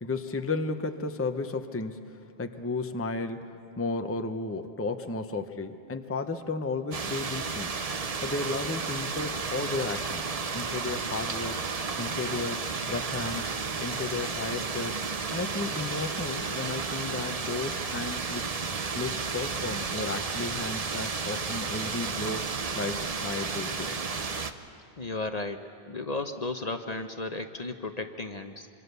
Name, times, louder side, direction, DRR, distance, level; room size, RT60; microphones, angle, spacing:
voice 1, 0.0-7.8 8.2-10.2 10.5-11.6 12.0-13.5 13.8-15.0 15.3-18.5 18.9-22.4 22.7-24.0, left 3 dB, 15° left, 7 dB, 0.7 m, -33 dB
sound 1, 6.9-24.5, right 4 dB, 40° right, 0.8 m, -32 dB
voice 2, 25.0-28.7, left 2 dB, 40° left, 7 dB, 0.9 m, -34 dB
25.5 x 25.0 x 6.8 m, 2.6 s
omnidirectional pair, 1.1 m